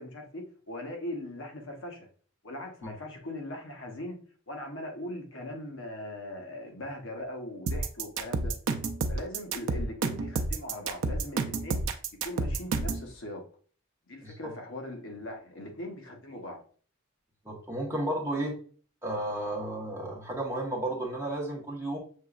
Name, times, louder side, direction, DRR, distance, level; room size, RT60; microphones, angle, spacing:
voice 1, 0.0-2.1 2.4-4.2 4.5-8.5 9.1-13.4 14.1-16.6, left 1 dB, 65° left, 0.9 m, -40 dB
sound 1, 7.7-13.0, right 3 dB, 75° right, 0.5 m, -29 dB
voice 2, 17.4-18.5 19.0-22.0, right 1 dB, 15° right, 1.1 m, -33 dB
6.5 x 2.9 x 2.4 m
head